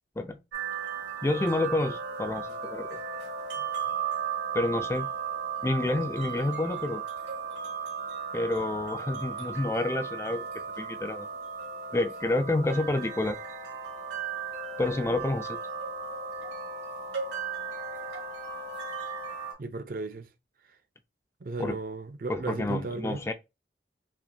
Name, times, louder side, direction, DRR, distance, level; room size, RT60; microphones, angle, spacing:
sound 1, 0.5-19.5, right 6 dB, 75° right, 1.6 m, -36 dB
voice 1, 1.2-3.0 4.5-5.1 5.6-7.0 8.3-10.5 10.8-11.3 11.9-13.4 14.8-15.6 21.6-21.8 22.3-23.3, left 2 dB, 15° left, 0.3 m, -29 dB
voice 2, 19.6-20.3 21.4-23.2, right 3 dB, 50° right, 0.5 m, -35 dB
5.8 x 2.1 x 2.5 m
head